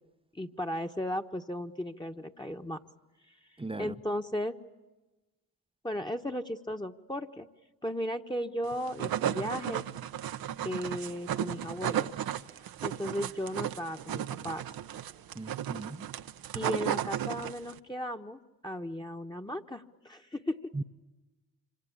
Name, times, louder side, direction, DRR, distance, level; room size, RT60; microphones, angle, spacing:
voice 1, 0.3-2.8 3.3-3.4 3.8-4.6 5.8-7.5 7.8-9.9 10.6-12.2 12.8-14.6 16.5-20.7, equal, 10° left, 1.4 m, -36 dB
voice 2, 3.6-3.9 15.3-16.1 20.7-20.8, right 2 dB, 15° right, 0.9 m, -38 dB
sound 1, 8.7-17.8, right 10 dB, 65° right, 1.0 m, -34 dB
26.0 x 26.0 x 8.8 m
hypercardioid pair, 50°, 38 cm